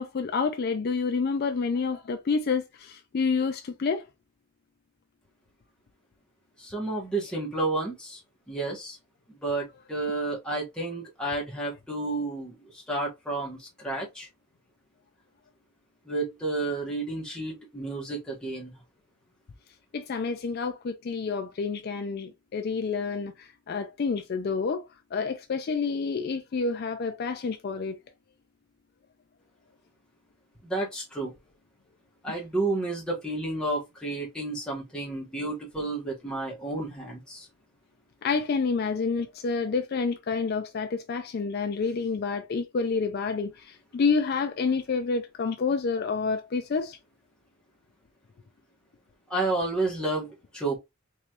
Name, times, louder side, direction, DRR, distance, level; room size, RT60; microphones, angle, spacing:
voice 1, 0.0-4.1 19.9-28.0 32.3-32.4 38.2-47.0, left 4 dB, 45° left, 0.4 m, -28 dB
voice 2, 6.6-8.2 8.5-9.0 9.3-14.3 16.1-18.8 30.6-31.3 32.2-37.5 49.3-50.8, right 2 dB, 5° left, 1.3 m, -31 dB
3.6 x 3.0 x 2.9 m
head